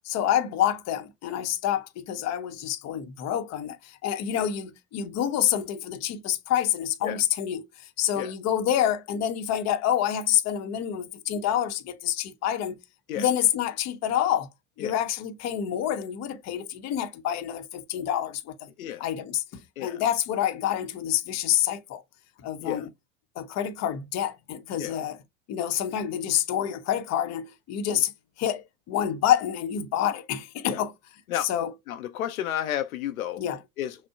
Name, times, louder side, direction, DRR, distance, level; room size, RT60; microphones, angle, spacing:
voice 1, 0.0-12.8 13.1-14.5 14.8-18.7 19.0-22.0 22.4-22.9 23.4-25.2 25.5-28.1 28.4-30.9 31.4-31.7 33.4-33.6, left 10 dB, 40° left, 0.8 m, -27 dB
voice 2, 31.9-33.4 33.8-33.9, left 11 dB, 80° left, 0.5 m, -31 dB
6.0 x 2.1 x 2.3 m
hypercardioid pair, 80°, 42 cm